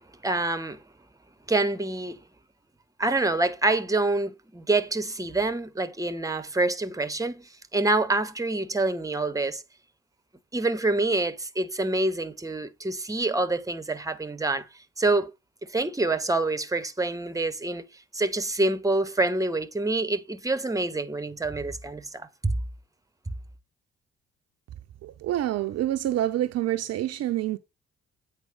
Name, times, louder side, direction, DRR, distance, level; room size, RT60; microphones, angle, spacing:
voice 1, 0.2-0.8 1.5-2.2 3.0-9.6 10.5-14.7 15.0-15.3 15.7-17.9 18.1-22.3, right 2 dB, 10° right, 1.1 m, -26 dB
voice 2, 25.0-27.6, right 13 dB, 55° right, 0.7 m, -27 dB
8.4 x 4.9 x 4.7 m
figure-of-eight pair, 40°, 31 cm